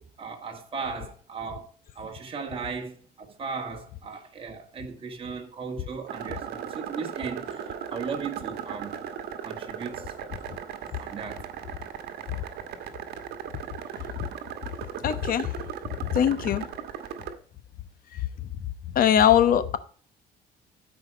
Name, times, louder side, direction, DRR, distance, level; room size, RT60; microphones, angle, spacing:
voice 1, 0.0-1.7 2.0-9.0 9.4-10.1 11.0-11.4, right 5 dB, 35° right, 1.9 m, -36 dB
sound 1, 6.1-17.3, right 8 dB, 70° right, 1.3 m, -37 dB
voice 2, 15.0-15.5 15.8-16.7 18.1-18.3 18.9-19.8, left 10 dB, 55° left, 1.0 m, -22 dB
12.5 x 5.0 x 5.0 m
cardioid pair, 110°, 17 cm